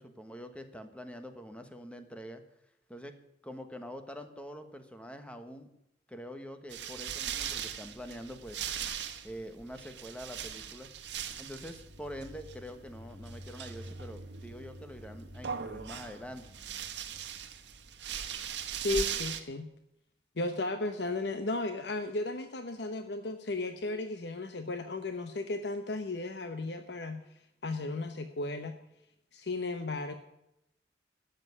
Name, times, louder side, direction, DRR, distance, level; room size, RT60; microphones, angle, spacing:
voice 1, 0.0-2.4 2.9-3.1 3.4-5.7 6.1-8.6 9.2-10.9 11.4-16.4, equal, 5° left, 8 dB, 1.3 m, -45 dB
sound 1, 6.7-19.4, right 7 dB, 85° right, 1.3 m, -40 dB
voice 2, 18.8-19.7 20.4-27.2 27.6-28.8 29.3-30.1, left 2 dB, 70° left, 8 dB, 1.0 m, -35 dB
12.5 x 7.9 x 9.6 m, 0.83 s
head